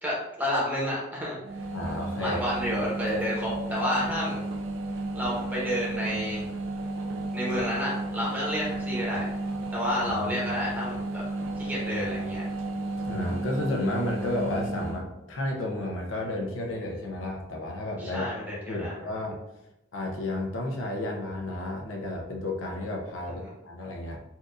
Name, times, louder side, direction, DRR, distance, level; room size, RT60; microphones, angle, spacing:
voice 1, 0.0-1.4 2.2-4.4 5.1-6.4 7.3-9.3 9.7-11.2 11.5-12.4 18.0-19.0 23.3-23.5, equal, 10° right, -6 dB, 1.1 m, -30 dB
sound 1, 1.4-15.0, right 2 dB, 80° right, 0.5 m, -33 dB
voice 2, 1.7-2.4 10.0-10.5 12.7-18.3 18.7-19.4 19.9-24.2, left 1 dB, 75° left, 0 dB, 0.7 m, -32 dB
4.3 x 2.6 x 2.5 m, 0.91 s
head